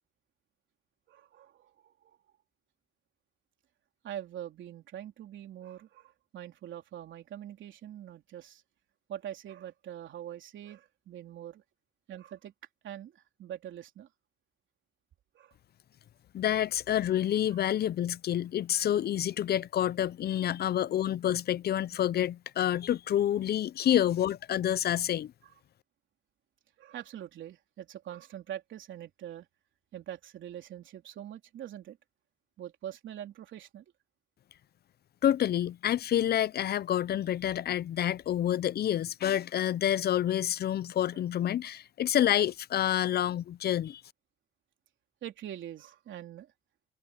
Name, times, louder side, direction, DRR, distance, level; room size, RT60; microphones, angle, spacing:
voice 1, 1.1-2.2 4.0-8.6 9.1-11.6 12.1-12.5 12.8-14.1 15.3-15.6 17.5-17.6 26.8-29.5 29.9-32.0 32.6-33.8 41.1-41.2 42.9-43.0 45.2-46.5, right 11 dB, 75° right, 3.6 m, -44 dB
voice 2, 16.3-25.3 35.2-44.0, left 11 dB, 55° left, 0.5 m, -28 dB
cardioid pair, 90°, 20 cm